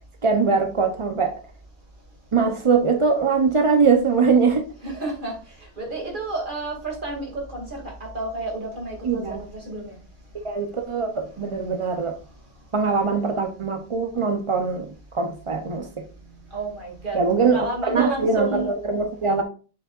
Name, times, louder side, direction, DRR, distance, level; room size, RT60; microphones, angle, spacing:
voice 1, 0.2-1.3 2.3-4.7 9.0-9.4 10.4-12.1 12.7-16.0 17.1-19.4, right 5 dB, 55° right, 0.3 m, -22 dB
voice 2, 4.8-5.3 5.8-10.0 16.5-18.7, right 3 dB, 30° right, 2.5 m, -30 dB
7.0 x 6.3 x 2.4 m
omnidirectional pair, 1.7 m